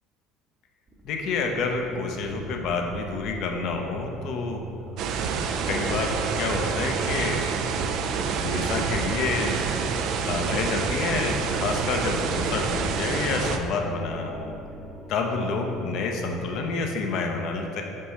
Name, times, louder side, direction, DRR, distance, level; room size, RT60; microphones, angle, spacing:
sound 1, 0.9-16.7, right 1 dB, 30° right, 0.9 m, -42 dB
voice 1, 1.0-4.6 5.7-7.6 8.3-9.6 10.3-14.5 15.1-17.8, left 4 dB, 60° left, 3 dB, 0.7 m, -28 dB
sound 2, 5.0-13.6, right 5 dB, 60° right, 0.4 m, -27 dB
5.4 x 5.3 x 3.3 m, 2.7 s
hypercardioid pair, 65°, 0 cm